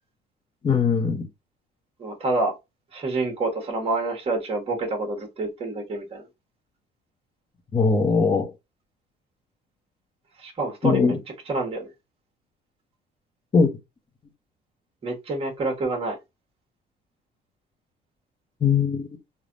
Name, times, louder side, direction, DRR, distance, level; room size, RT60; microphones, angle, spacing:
voice 1, 0.6-1.3 7.7-8.5 10.8-11.2 13.5-13.7 18.6-19.1, left 5 dB, 30° left, 0.7 m, -20 dB
voice 2, 2.0-2.5 2.9-6.3 10.4-11.1 11.5-11.9 15.0-16.2, right 2 dB, 35° right, 1.2 m, -27 dB
3.2 x 2.3 x 2.5 m
cardioid pair, 110°, 17 cm